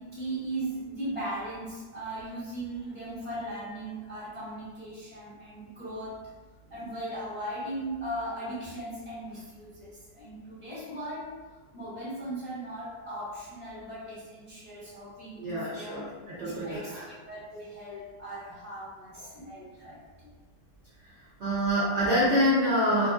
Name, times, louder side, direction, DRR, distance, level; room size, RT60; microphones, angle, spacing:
voice 1, 0.0-6.2 6.7-11.3 11.7-16.0 16.4-20.3 22.2-22.3, right 1 dB, 35° left, -11 dB, 0.5 m, -38 dB
voice 2, 15.4-17.1 21.4-23.1, equal, 65° right, -8 dB, 0.7 m, -26 dB
2.7 x 2.5 x 2.3 m, 1.3 s
omnidirectional pair, 1.8 m